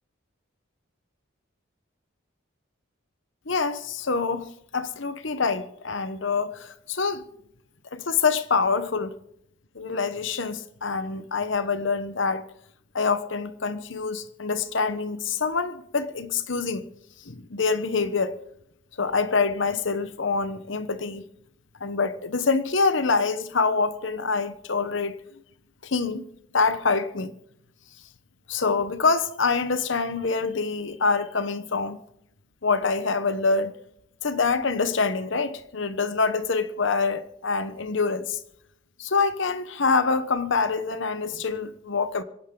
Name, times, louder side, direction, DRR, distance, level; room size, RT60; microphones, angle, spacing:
voice 1, 3.5-7.2 7.9-9.2 9.7-12.4 12.9-16.8 17.2-18.4 19.0-21.2 21.8-25.2 25.8-26.2 26.5-27.3 28.5-32.0 32.6-33.7 34.2-38.4 39.0-42.2, left 4 dB, 65° left, 1.0 m, -25 dB
26.0 x 11.5 x 3.8 m
head